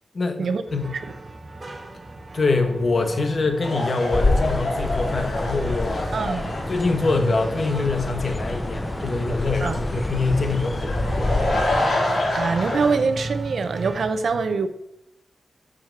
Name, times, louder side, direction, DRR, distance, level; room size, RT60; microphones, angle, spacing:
voice 1, 0.1-0.9 2.3-6.0 6.7-11.2, left 3 dB, 50° left, 1.1 m, -24 dB
sound 1, 0.7-14.1, right 2 dB, 30° right, 1.0 m, -36 dB
sound 2, 3.6-13.0, left 1 dB, 80° left, 3.6 m, -28 dB
sound 3, 4.1-11.9, left 2 dB, 20° left, 0.5 m, -28 dB
voice 2, 6.1-6.5 9.6-9.8 11.9-14.7, right 4 dB, 85° right, 0.7 m, -24 dB
8.7 x 7.5 x 4.6 m
wide cardioid pair, 170°, 0 cm